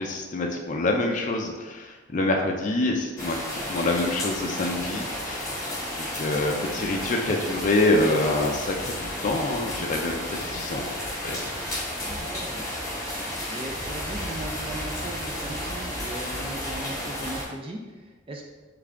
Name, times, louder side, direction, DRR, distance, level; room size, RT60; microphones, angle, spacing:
voice 1, 0.0-5.6 6.0-8.9 9.2-10.9 11.2-11.4, left 2 dB, 40° left, 1 dB, 0.4 m, -26 dB
sound 1, 3.2-17.4, left 1 dB, 15° left, 1.1 m, -32 dB
voice 2, 12.0-12.7 13.5-18.5, right 1 dB, 25° right, 0 dB, 0.4 m, -38 dB
3.6 x 3.3 x 3.6 m, 1.3 s
head